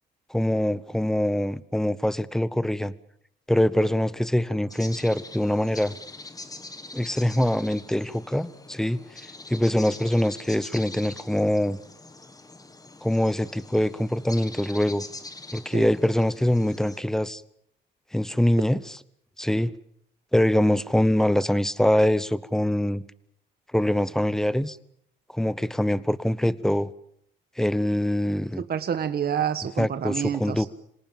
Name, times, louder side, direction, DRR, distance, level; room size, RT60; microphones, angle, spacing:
voice 1, 0.3-2.9 3.5-6.0 6.9-9.0 9.5-11.8 13.0-15.0 15.5-17.4 18.1-18.8 19.4-19.7 20.3-23.0 23.7-24.8 25.3-26.9 27.6-28.6 29.8-30.7, left 1 dB, ahead, 18 dB, 0.9 m, -24 dB
sound 1, 4.7-17.0, left 2 dB, 20° left, 1.7 m, -43 dB
voice 2, 28.7-30.7, right 8 dB, 50° right, 9 dB, 1.4 m, -28 dB
26.0 x 18.5 x 7.3 m, 0.69 s
cardioid pair, 90°, 20 cm